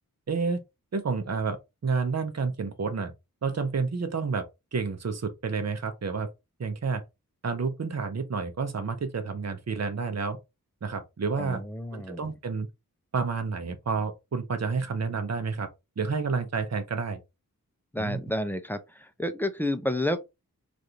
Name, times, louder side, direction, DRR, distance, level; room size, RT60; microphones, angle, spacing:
voice 1, 0.3-0.6 0.9-3.1 3.4-4.5 4.7-6.3 6.6-7.0 7.4-10.4 10.8-11.6 11.9-12.7 13.1-15.7 16.0-17.2 18.0-18.2, right 4 dB, 50° right, 0.7 m, -30 dB
voice 2, 11.4-12.3 17.9-20.2, left 1 dB, 5° left, 0.5 m, -30 dB
3.2 x 2.5 x 2.7 m
wide cardioid pair, 75°, 35 cm